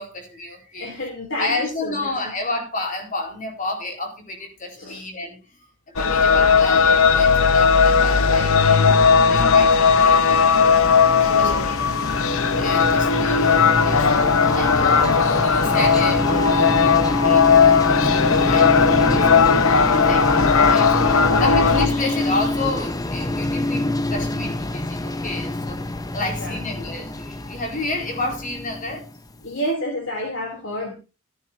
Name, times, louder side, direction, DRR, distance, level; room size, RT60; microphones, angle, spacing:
voice 1, 0.0-0.9 1.4-5.4 5.9-10.6 11.2-11.8 12.5-19.4 19.8-21.1 21.4-25.8 26.1-29.0, left 2 dB, 40° left, 3 dB, 4.1 m, -30 dB
voice 2, 0.8-2.3 4.8-5.0 11.2-11.7 26.4-26.6 29.4-30.9, equal, 60° left, 2 dB, 3.0 m, -30 dB
sound 1, 6.0-21.9, left 5 dB, 80° left, 0.9 m, -17 dB
sound 2, 10.3-29.3, left 1 dB, 15° left, 0.8 m, -26 dB
14.5 x 14.0 x 2.7 m, 0.30 s
head